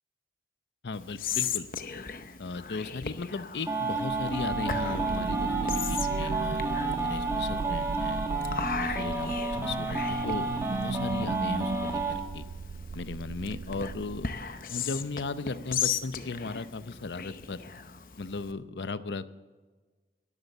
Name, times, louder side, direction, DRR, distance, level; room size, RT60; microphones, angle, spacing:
voice 1, 0.8-1.7 2.4-8.2 8.8-12.5 12.9-14.3 14.7-17.8 18.2-19.3, left 3 dB, 80° left, 13 dB, 0.7 m, -37 dB
Whispering, 0.9-18.5, left 7 dB, 50° left, 0.8 m, -37 dB
sound 1, 3.6-12.1, right 3 dB, 15° right, 1.9 m, -31 dB
sound 2, 4.0-14.6, right 4 dB, 85° right, 0.4 m, -36 dB
12.0 x 12.0 x 7.3 m, 1.3 s
head